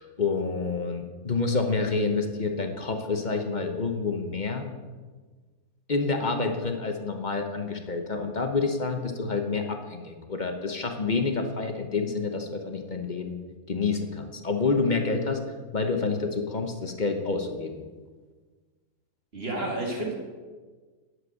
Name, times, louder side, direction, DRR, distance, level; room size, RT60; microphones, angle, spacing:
voice 1, 0.0-4.6 5.9-13.4 13.7-15.4 15.7-17.8, left 4 dB, 35° left, 5 dB, 0.9 m, -28 dB
voice 2, 19.3-20.1, right 2 dB, 40° right, -1 dB, 2.4 m, -30 dB
11.0 x 7.9 x 6.3 m, 1.4 s
omnidirectional pair, 1.7 m